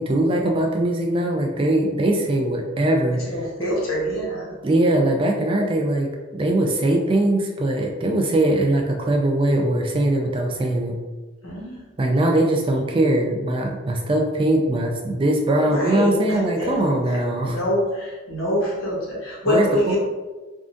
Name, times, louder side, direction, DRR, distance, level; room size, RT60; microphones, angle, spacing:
voice 1, 0.0-3.2 4.6-11.0 12.0-17.6 19.5-20.0, right 1 dB, 25° right, 2 dB, 0.3 m, -21 dB
voice 2, 3.2-4.5 11.4-11.8 15.6-20.0, equal, 90° left, -5 dB, 1.1 m, -25 dB
3.6 x 2.5 x 2.5 m, 1.3 s
head